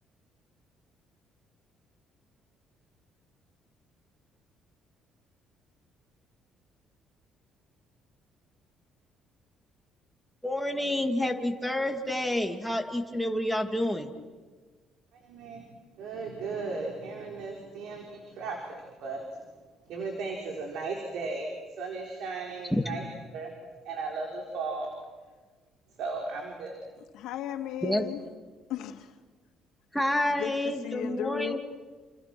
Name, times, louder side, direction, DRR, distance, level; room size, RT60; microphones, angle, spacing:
voice 1, 10.4-14.1 22.7-22.8 27.8-28.0 29.9-31.6, left 1 dB, ahead, 3 dB, 2.4 m, -28 dB
voice 2, 15.1-15.7 16.0-19.5 19.9-23.0 23.3-23.5 23.8-24.9 26.0-26.7, right 3 dB, 75° right, 1 dB, 4.6 m, -36 dB
voice 3, 27.1-28.2 28.7-29.1 30.3-31.6, left 10 dB, 85° left, 6 dB, 2.4 m, -35 dB
29.5 x 28.5 x 6.2 m, 1.4 s
cardioid pair, 135°, 0 cm